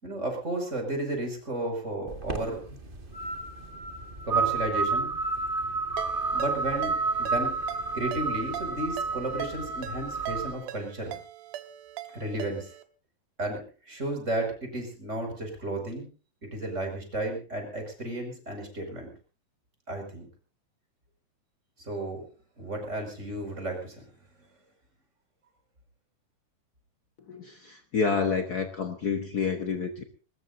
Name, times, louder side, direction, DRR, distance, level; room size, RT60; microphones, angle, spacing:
voice 1, 0.0-2.8 4.2-5.1 6.3-7.5 7.9-11.2 12.1-12.7 13.4-13.6 13.9-16.1 16.4-19.1 19.9-20.3 21.8-22.2 22.6-24.0, right 1 dB, 20° right, 2 dB, 5.6 m, -33 dB
sound 1, 2.1-10.5, right 4 dB, 35° right, 0.8 m, -30 dB
Ringtone, 6.0-12.8, right 13 dB, 75° right, 2.6 m, -42 dB
voice 2, 27.3-30.0, left 5 dB, 80° left, 5 dB, 0.8 m, -29 dB
21.5 x 20.5 x 2.7 m, 0.36 s
omnidirectional pair, 3.9 m